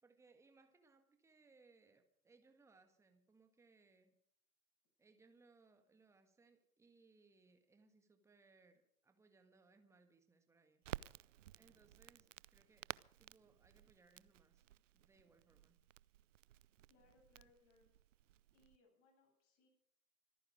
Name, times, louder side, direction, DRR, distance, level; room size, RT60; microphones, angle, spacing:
voice 1, 0.0-4.1 5.0-11.1 11.5-12.9 13.2-14.7 14.9-15.8, right 3 dB, 5° right, 7 dB, 1.6 m, -70 dB
Crackle, 10.8-18.8, right 13 dB, 60° right, 0.5 m, -54 dB
voice 2, 16.9-17.9 18.5-19.7, left 3 dB, 30° left, 2 dB, 7.9 m, -72 dB
25.0 x 9.5 x 5.0 m, 0.70 s
figure-of-eight pair, 115°, 44 cm